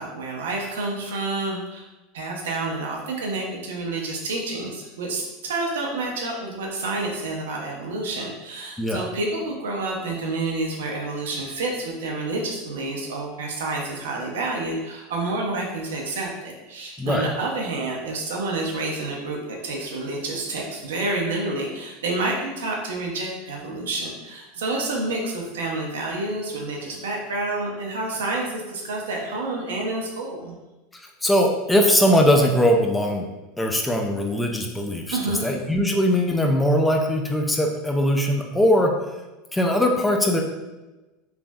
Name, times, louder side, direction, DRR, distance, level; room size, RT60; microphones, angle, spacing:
voice 1, 0.0-1.8 2.1-30.6 35.1-35.5, right 2 dB, 80° right, 0 dB, 0.6 m, -29 dB
voice 2, 8.8-9.1 17.0-17.3 31.2-33.3 33.6-38.9 39.5-40.4, equal, 10° left, 2 dB, 0.4 m, -20 dB
3.2 x 2.5 x 2.2 m, 1.1 s
hypercardioid pair, 90°, 0 cm